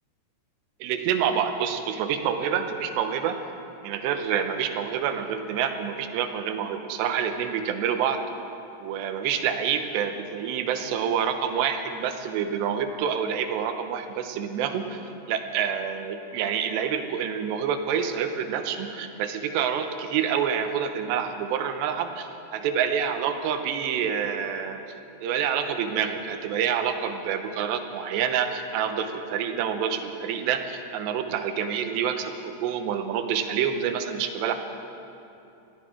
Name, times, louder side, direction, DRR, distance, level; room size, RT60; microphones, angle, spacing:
voice 1, 0.8-3.4 3.8-8.2 8.8-15.0 15.3-24.8 25.2-34.5, right 8 dB, 85° right, 7 dB, 3.1 m, -27 dB
22.5 x 14.5 x 4.5 m, 2.8 s
omnidirectional pair, 4.9 m